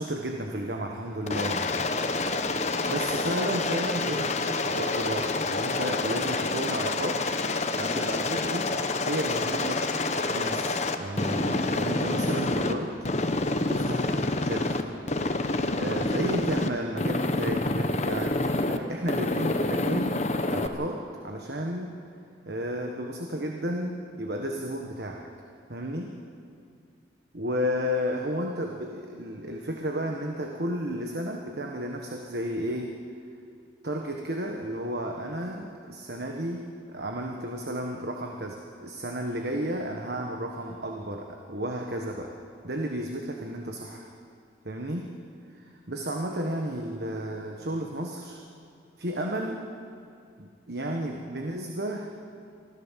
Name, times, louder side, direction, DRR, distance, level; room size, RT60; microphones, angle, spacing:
voice 1, 0.0-1.7 2.8-7.2 7.8-8.7 9.0-9.9 10.3-12.9 13.7-14.8 15.7-20.1 20.5-21.9 22.5-25.3 25.7-26.1 27.3-32.9 33.8-42.3 42.6-44.1 44.6-45.1 45.5-48.4 49.0-49.7 50.4-52.1, equal, 60° right, 2 dB, 1.5 m, -33 dB
Aircraft, 1.3-12.7 13.1-14.8 15.1-16.7 17.0-18.8 19.1-20.7, left 2 dB, 40° left, 1.1 m, -27 dB
24.5 x 15.5 x 7.5 m, 2.4 s
head